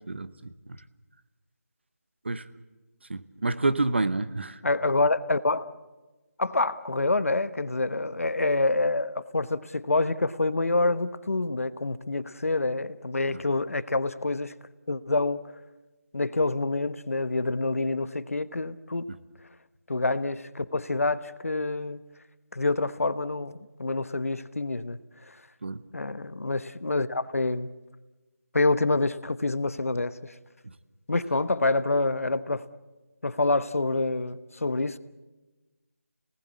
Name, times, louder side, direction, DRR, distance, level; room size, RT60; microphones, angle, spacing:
voice 1, 0.1-0.8 2.2-2.4 3.1-4.6 13.3-13.4 19.1-19.2 25.6-25.8 30.6-30.7, right 2 dB, 45° right, 13 dB, 1.1 m, -29 dB
voice 2, 4.6-5.7 6.4-14.5 14.9-15.4 16.1-19.1 19.9-22.0 22.5-25.0 25.3-25.4 25.9-27.7 28.5-30.3 31.1-32.6 33.2-35.0, left 2 dB, 65° left, 14 dB, 1.1 m, -27 dB
27.5 x 19.0 x 8.4 m, 1.2 s
figure-of-eight pair, 175°, 8 cm